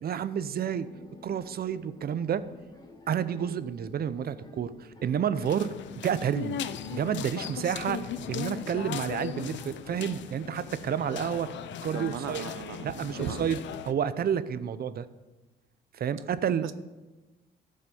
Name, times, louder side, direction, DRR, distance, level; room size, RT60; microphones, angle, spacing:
voice 1, 0.0-0.9 1.2-2.4 3.1-6.6 6.9-11.5 11.8-12.4 12.8-13.6 13.8-15.1 15.9-16.7, right 8 dB, 50° right, 15 dB, 0.7 m, -30 dB
sound 1, 0.6-10.2, left 3 dB, 20° left, 1.5 m, -50 dB
sound 2, 5.4-13.9, left 9 dB, 65° left, 0.6 m, -38 dB
voice 2, 11.9-13.5 16.6-16.7, right 10 dB, 85° right, 12 dB, 0.7 m, -38 dB
13.5 x 5.4 x 7.1 m, 1.2 s
cardioid pair, 90°, 20 cm